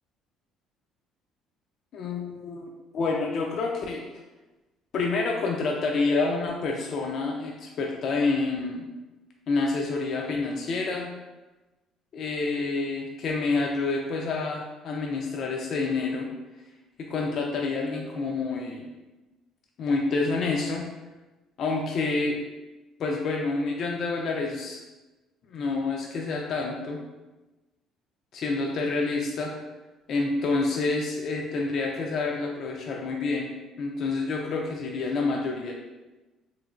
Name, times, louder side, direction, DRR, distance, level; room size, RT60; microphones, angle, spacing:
voice 1, 1.9-4.1 4.9-8.9 9.5-11.1 12.1-16.3 17.0-18.9 19.8-20.8 21.6-22.4 23.0-24.8 25.5-27.0 28.3-29.5 30.1-33.5 33.8-35.7, left 3 dB, 55° left, 0 dB, 0.4 m, -28 dB
3.1 x 3.0 x 2.4 m, 1.1 s
cardioid pair, 120°, 0 cm